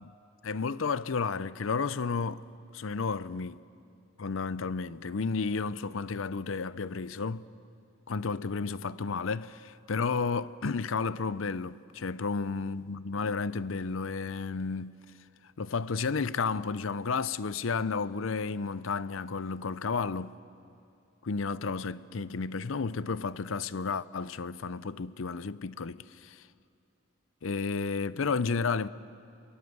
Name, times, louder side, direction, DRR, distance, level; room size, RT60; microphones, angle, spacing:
voice 1, 0.4-2.4 2.7-3.6 4.2-7.5 8.1-15.0 15.6-20.4 21.2-26.4 27.4-28.9, left 4 dB, 70° left, 0.6 m, -32 dB
28.5 x 22.0 x 8.0 m
head